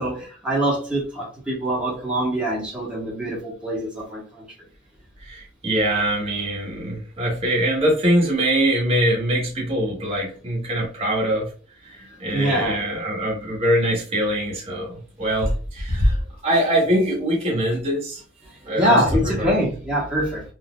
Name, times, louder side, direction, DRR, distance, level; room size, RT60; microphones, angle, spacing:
voice 1, 0.0-4.2 12.3-12.8 18.7-20.4, right 1 dB, 5° right, 1.3 m, -23 dB
voice 2, 5.2-11.5 11.8-16.2 16.4-18.2 18.7-19.5, right 1 dB, 30° right, 1.2 m, -23 dB
4.0 x 2.7 x 2.3 m
head